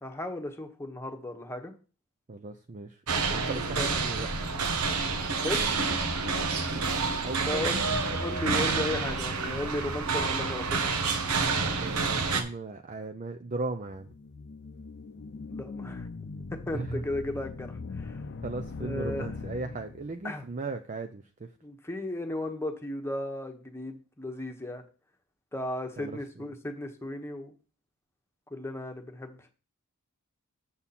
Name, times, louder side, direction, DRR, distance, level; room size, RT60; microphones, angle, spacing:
voice 1, 0.0-1.7 3.5-3.9 5.4-5.7 7.5-7.8 8.1-10.9 15.5-16.1 16.7-18.2 18.8-19.3 20.2-20.4 21.6-24.8 25.5-27.5 28.5-29.5, left 1 dB, 10° left, 4 dB, 1.1 m, -35 dB
voice 2, 2.3-3.0 3.3-4.3 7.2-8.2 11.8-14.1 16.7-17.0 18.4-21.5 26.0-26.5, right 3 dB, 35° right, 6 dB, 0.5 m, -37 dB
sound 1, 3.1-12.4, right 4 dB, 90° right, 1.1 m, -28 dB
sound 2, 13.9-20.2, left 3 dB, 50° left, 0.6 m, -40 dB
7.2 x 7.1 x 4.2 m, 0.36 s
head